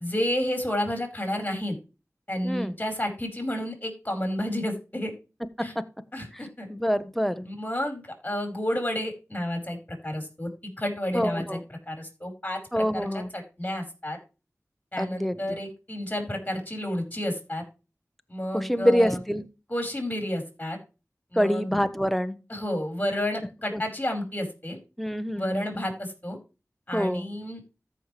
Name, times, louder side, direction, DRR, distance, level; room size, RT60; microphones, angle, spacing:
voice 1, 0.0-1.8 2.3-5.1 5.6-5.7 6.1-6.7 7.4-9.8 10.0-10.5 10.8-11.6 11.9-13.1 13.3-14.2 14.9-17.6 18.3-19.2 19.7-20.8 21.3-21.6 22.5-24.8 25.3-26.4 26.9-27.6, left 1 dB, 25° left, 3 dB, 4.6 m, -30 dB
voice 2, 2.4-2.8 6.3-6.4 6.7-7.5 11.1-11.6 12.7-13.3 15.0-15.6 18.5-19.4 21.4-22.4 23.7-23.8 25.0-25.8 26.9-27.3, equal, 5° left, 11 dB, 1.0 m, -26 dB
14.0 x 5.8 x 3.3 m, 0.31 s
wide cardioid pair, 40°, 6 cm